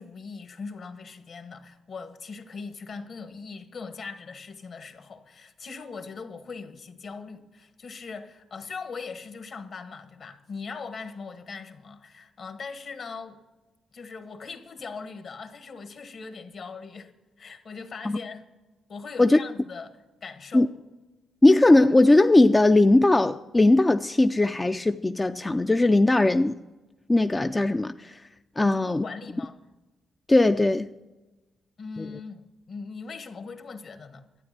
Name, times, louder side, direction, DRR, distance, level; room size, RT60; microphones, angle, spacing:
voice 1, 0.0-13.4 13.9-17.1 17.4-18.4 18.9-20.7 28.6-29.6 31.8-34.3, left 4 dB, 55° left, 1.4 m, -40 dB
voice 2, 21.4-26.5 27.1-28.2 28.6-29.0 30.3-30.9 32.0-32.1, left 2 dB, 20° left, 0.4 m, -19 dB
12.5 x 9.2 x 7.4 m
cardioid pair, 90°, 0 cm